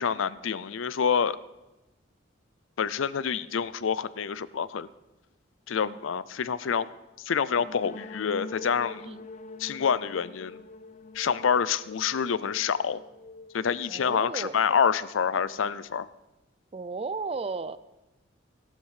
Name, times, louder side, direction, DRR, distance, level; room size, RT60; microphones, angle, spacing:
voice 1, 0.0-1.4 2.8-4.9 5.7-6.9 7.2-9.0 9.6-10.6 11.1-13.0 13.5-16.1, left 7 dB, 85° left, 18 dB, 0.5 m, -27 dB
sound 1, 7.5-15.2, left 3 dB, 35° left, 0.5 m, -45 dB
voice 2, 13.9-14.6 16.7-17.8, right 4 dB, 30° right, 15 dB, 0.4 m, -34 dB
14.0 x 11.5 x 4.9 m, 1.0 s
head